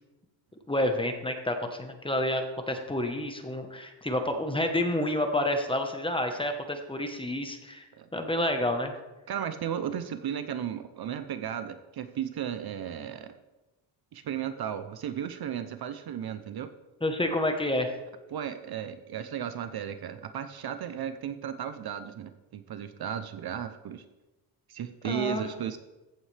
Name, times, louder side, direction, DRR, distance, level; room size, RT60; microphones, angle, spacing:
voice 1, 0.7-7.9 8.1-8.9 17.0-17.9 25.0-25.5, left 1 dB, 10° left, 5 dB, 1.0 m, -29 dB
voice 2, 9.3-13.3 14.1-16.7 18.3-24.0 24.7-25.8, right 9 dB, 50° right, 10 dB, 0.7 m, -35 dB
15.0 x 8.4 x 3.3 m, 1.1 s
cardioid pair, 140°, 48 cm